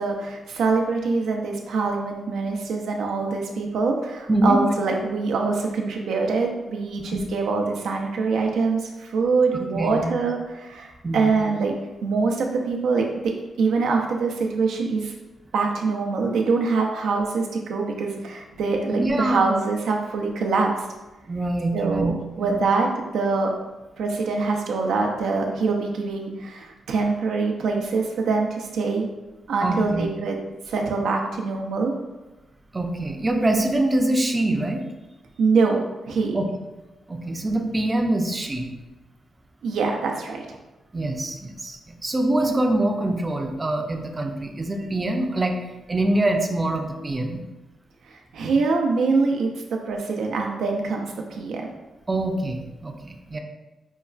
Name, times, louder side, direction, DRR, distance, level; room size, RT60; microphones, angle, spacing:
voice 1, 0.0-11.7 12.0-15.1 15.5-20.7 21.7-22.1 22.4-22.9 23.1-23.5 24.0-29.1 29.5-30.4 30.7-31.9 35.4-36.4 39.6-40.6 48.1-49.5 49.9-51.7, right 4 dB, 85° right, 1 dB, 0.5 m, -24 dB
voice 2, 4.3-4.6 7.1-7.3 9.7-10.1 11.0-11.4 18.9-19.4 21.3-22.7 29.6-30.1 32.7-34.8 36.3-36.5 37.1-38.6 40.9-45.6 45.9-47.4 52.1-53.4, right 1 dB, 25° right, 3 dB, 0.5 m, -24 dB
5.3 x 2.3 x 2.3 m, 1.1 s
cardioid pair, 70°, 0 cm